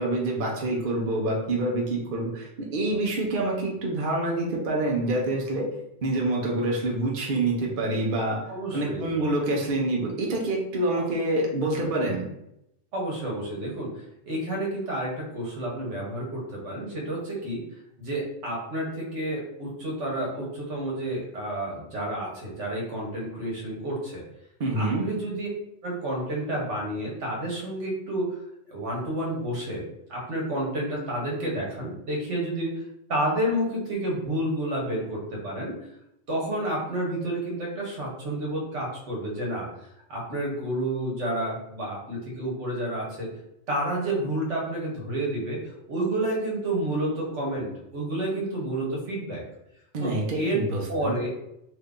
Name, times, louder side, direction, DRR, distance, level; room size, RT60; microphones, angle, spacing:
voice 1, 0.0-5.7 6.0-8.4 8.7-12.2 24.6-25.0 49.9-51.2, right 2 dB, 55° right, -2 dB, 0.8 m, -26 dB
voice 2, 8.5-9.1 12.9-17.6 18.0-24.2 24.8-25.5 25.8-28.4 28.7-29.8 30.1-32.8 33.1-35.8 36.3-39.7 40.1-43.3 43.7-49.4 50.0-50.6 50.9-51.3, right 1 dB, 75° right, -2 dB, 1.3 m, -30 dB
2.8 x 2.6 x 3.5 m, 0.81 s
omnidirectional pair, 1.2 m